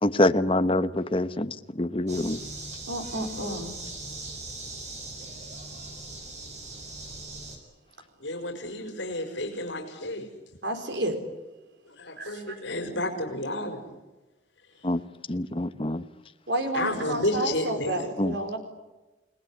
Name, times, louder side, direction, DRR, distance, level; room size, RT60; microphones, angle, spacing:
voice 1, 0.0-2.4 14.8-15.0 15.3-16.0 18.2-18.3, left 1 dB, 30° left, 1.0 m, -25 dB
sound 1, 2.1-7.6, right 2 dB, 35° right, 6.8 m, -40 dB
voice 2, 2.9-3.7 10.6-11.2 12.2-12.6 16.5-18.6, right 1 dB, 65° right, 4.3 m, -31 dB
voice 3, 8.2-10.3 11.9-14.0 14.8-14.9 16.7-18.1, left 1 dB, 70° left, 4.9 m, -31 dB
29.5 x 19.5 x 9.9 m
head